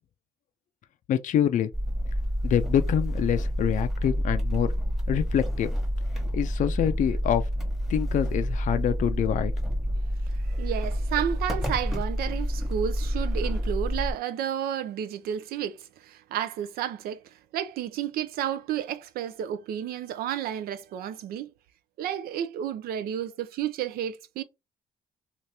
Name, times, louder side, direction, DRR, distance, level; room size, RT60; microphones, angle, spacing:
voice 1, 1.1-1.7 2.4-4.7 5.1-5.7 6.3-7.4 7.9-9.5, left 10 dB, 60° left, 0.4 m, -25 dB
sound 1, 1.7-14.1, equal, ahead, 1.0 m, -28 dB
voice 2, 10.5-17.2 17.5-21.5 22.0-24.4, right 10 dB, 85° right, 0.5 m, -31 dB
2.8 x 2.5 x 3.3 m
cardioid pair, 95°, 15 cm